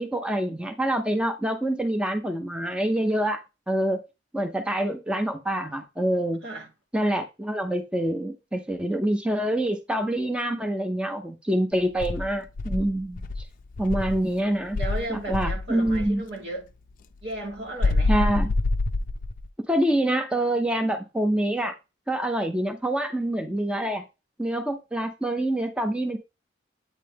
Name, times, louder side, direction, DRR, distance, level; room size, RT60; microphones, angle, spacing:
voice 1, 0.0-3.4 3.7-4.0 4.3-6.4 6.9-13.2 13.8-14.8 15.1-16.2 18.1-18.5 19.7-21.7 22.1-24.0 24.4-26.2, right 1 dB, 5° right, 0.6 m, -26 dB
Insect, 12.0-14.3 14.7-16.2 17.8-19.5, left 2 dB, 50° left, 0.4 m, -26 dB
voice 2, 14.8-16.7 17.2-18.1, right 1 dB, 80° right, 2.6 m, -34 dB
8.4 x 3.3 x 3.4 m
head